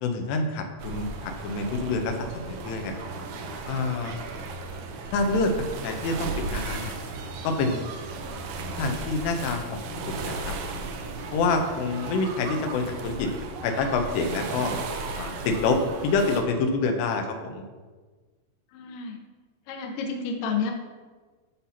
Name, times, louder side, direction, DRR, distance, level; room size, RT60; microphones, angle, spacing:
voice 1, 0.0-2.9 3.7-4.2 5.1-5.5 5.8-6.9 7.4-7.9 8.8-10.7 11.3-13.3 13.6-14.7 15.1-17.6, left 3 dB, 90° left, 4 dB, 3.0 m, -27 dB
sound 1, 0.8-16.4, right 3 dB, 80° right, 1.9 m, -35 dB
voice 2, 18.7-19.2 19.7-20.7, left 5 dB, 70° left, 2 dB, 2.2 m, -30 dB
13.5 x 5.8 x 2.8 m, 1.4 s
omnidirectional pair, 4.7 m